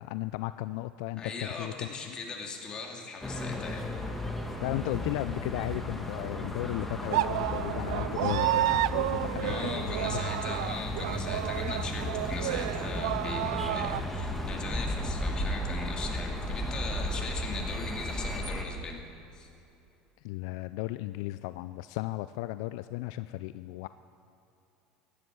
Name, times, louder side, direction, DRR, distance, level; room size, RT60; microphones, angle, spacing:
voice 1, 0.0-2.1 4.6-10.6 20.2-23.9, left 17 dB, 75° left, 13 dB, 0.3 m, -35 dB
voice 2, 1.2-3.9 9.4-19.0 19.3-19.5, left 4 dB, 30° left, 1 dB, 2.6 m, -39 dB
sound 1, 3.2-18.6, left 1 dB, 5° left, 1.6 m, -34 dB
Musical instrument, 4.4-12.9, right 3 dB, 35° right, 3.0 m, -54 dB
sound 2, 7.1-14.0, right 15 dB, 85° right, 0.3 m, -31 dB
15.0 x 11.0 x 6.2 m, 2.9 s
supercardioid pair, 100°, 3 cm